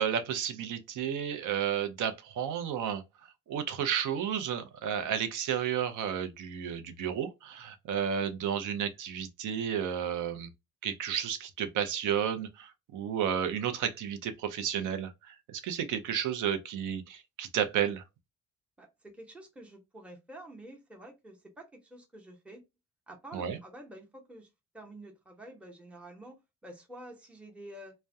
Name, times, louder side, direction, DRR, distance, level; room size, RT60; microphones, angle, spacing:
voice 1, 0.0-3.0 3.5-10.5 10.8-18.0 23.3-23.6, right 8 dB, 85° right, 0.6 m, -32 dB
voice 2, 18.8-22.6 23.1-24.5 24.7-27.9, right 1 dB, 5° right, 0.8 m, -49 dB
2.2 x 2.1 x 2.6 m
cardioid pair, 90°, 30 cm